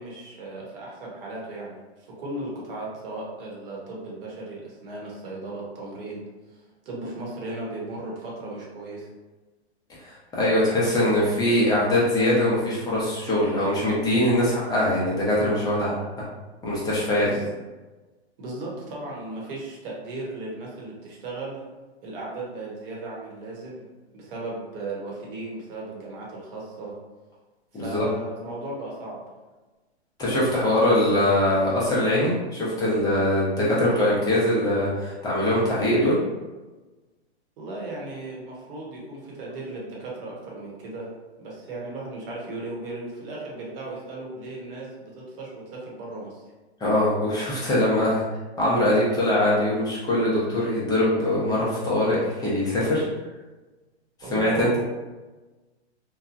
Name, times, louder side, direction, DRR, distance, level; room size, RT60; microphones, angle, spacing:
voice 1, 0.0-9.1 17.2-17.5 18.4-21.6 22.0-23.8 24.1-27.0 27.7-29.2 37.6-41.1 41.4-46.4 54.2-54.8, right 2 dB, 55° right, -4 dB, 1.1 m, -36 dB
voice 2, 10.0-15.9 16.6-17.3 27.7-28.1 30.2-36.2 46.8-48.2 48.6-53.0 54.3-54.8, left 1 dB, 10° left, -7 dB, 0.7 m, -22 dB
2.8 x 2.2 x 2.5 m, 1.2 s
hypercardioid pair, 130°, 34 cm